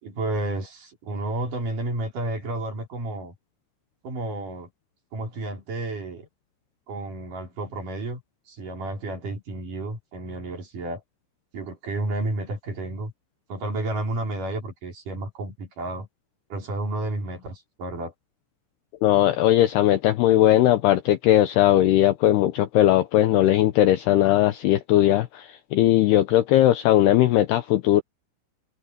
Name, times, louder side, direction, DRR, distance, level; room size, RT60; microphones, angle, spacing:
voice 1, 0.0-3.3 4.0-4.7 5.1-6.3 6.9-8.2 8.5-11.0 11.5-13.1 13.5-16.1 16.5-18.1, right 2 dB, 40° right, 5.8 m, -31 dB
voice 2, 19.0-28.0, left 13 dB, 90° left, 2.3 m, -19 dB
omnidirectional pair, 5.9 m